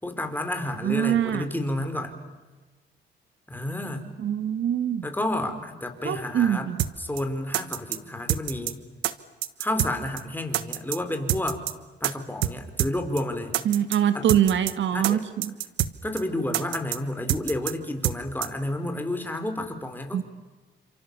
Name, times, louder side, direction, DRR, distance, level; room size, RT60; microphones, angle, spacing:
voice 1, 0.0-2.1 3.5-4.0 5.0-6.7 7.0-8.8 9.6-11.6 12.0-13.5 14.1-14.3 14.9-15.3 16.0-20.2, left 1 dB, 10° left, 5 dB, 5.0 m, -30 dB
voice 2, 0.8-1.5 4.2-5.1 6.0-6.8 13.7-15.5 20.1-20.2, right 10 dB, 70° right, 11 dB, 1.7 m, -24 dB
sound 1, 6.8-6.9 7.2-7.3 7.5-8.0 8.3-8.7 9.0-9.1 9.4-9.9 10.2-10.3 10.5-11.0 11.3-11.7 12.0-12.1 12.4-12.5 12.8-12.9 13.2-13.3 13.5-14.0 14.3-14.7 15.0-15.1 15.4-16.2 16.5-17.0 17.3-17.7 18.0-18.2 18.4-18.5, right 13 dB, 90° right, 1.3 m, -26 dB
30.0 x 27.0 x 7.3 m, 1.3 s
cardioid pair, 90°, 20 cm